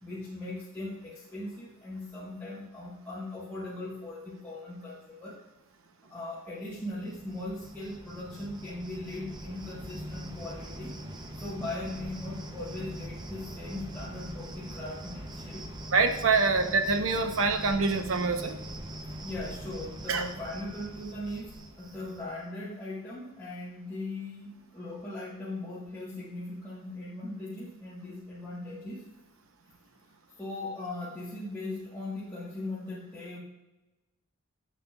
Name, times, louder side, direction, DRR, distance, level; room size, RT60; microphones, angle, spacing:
voice 1, 0.0-5.4 6.1-11.0 11.4-15.7 19.1-29.0 30.4-33.4, left 2 dB, 10° left, -9 dB, 1.3 m, -39 dB
Cricket, 6.7-22.4, right 1 dB, 20° right, 0.7 m, -42 dB
voice 2, 15.9-18.6 20.1-20.2, right 4 dB, 80° right, 7 dB, 0.8 m, -25 dB
10.5 x 7.3 x 2.4 m, 1.1 s
head